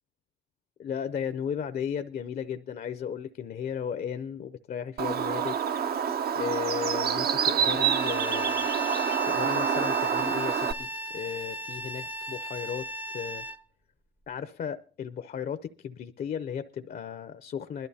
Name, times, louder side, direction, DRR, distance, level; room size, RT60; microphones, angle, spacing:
voice 1, 0.8-5.6 6.3-8.7 9.2-12.9 13.1-13.5 14.3-17.9, left 8 dB, 50° left, 0.5 m, -35 dB
Bird, 5.0-10.7, right 8 dB, 50° right, 0.6 m, -27 dB
Bowed string instrument, 7.7-13.6, equal, 10° right, 0.5 m, -36 dB
20.5 x 12.0 x 2.8 m
cardioid pair, 90°, 20 cm